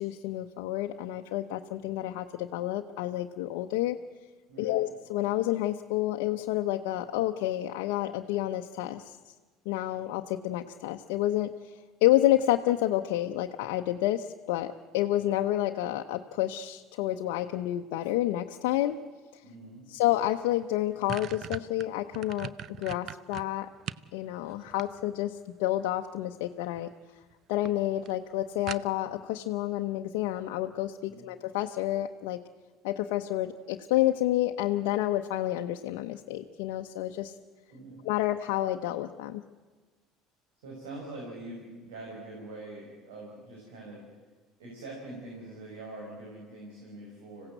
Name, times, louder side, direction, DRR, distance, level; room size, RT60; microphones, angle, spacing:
voice 1, 0.0-4.0 4.6-9.2 9.7-11.5 12.0-19.0 19.3-19.4 19.9-22.5 22.8-23.7 24.1-26.9 27.5-32.4 32.8-37.3 38.0-39.4, left 14 dB, 75° left, 4 dB, 0.8 m, -29 dB
voice 2, 4.5-4.8 19.4-19.9 31.1-31.3 37.7-38.1 40.6-44.0 44.6-47.5, right 2 dB, 85° right, -2 dB, 5.6 m, -44 dB
sound 1, 20.2-20.3 20.6-24.1 24.5-25.4 26.5-26.9 27.2-27.3 27.7-27.8 28.1-28.2 28.7-29.2, right 9 dB, 55° right, 0.6 m, -40 dB
26.0 x 16.5 x 7.9 m, 1.3 s
supercardioid pair, 80°, 0 cm